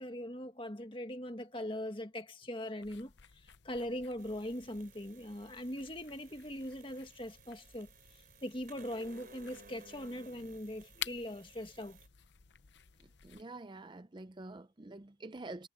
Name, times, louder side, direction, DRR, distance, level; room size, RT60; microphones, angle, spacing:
voice 1, 0.0-3.1 3.4-7.9 8.4-12.0, left 1 dB, 25° left, 1.8 m, -41 dB
sound 1, 2.8-13.4, left 11 dB, 65° left, 0.8 m, -51 dB
sound 2, 4.2-12.1, right 4 dB, 50° right, 4.2 m, -59 dB
voice 2, 13.0-15.7, right 2 dB, 25° right, 0.5 m, -47 dB
head